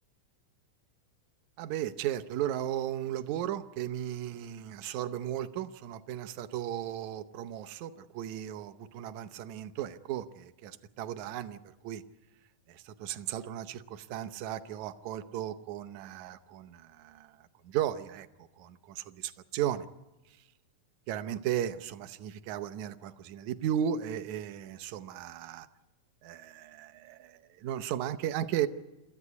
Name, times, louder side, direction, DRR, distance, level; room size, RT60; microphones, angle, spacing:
voice 1, 1.6-12.0 12.7-19.9 21.1-25.7 26.2-28.7, right 11 dB, 70° right, 12 dB, 2.1 m, -35 dB
28.0 x 14.0 x 8.4 m, 1.1 s
omnidirectional pair, 3.6 m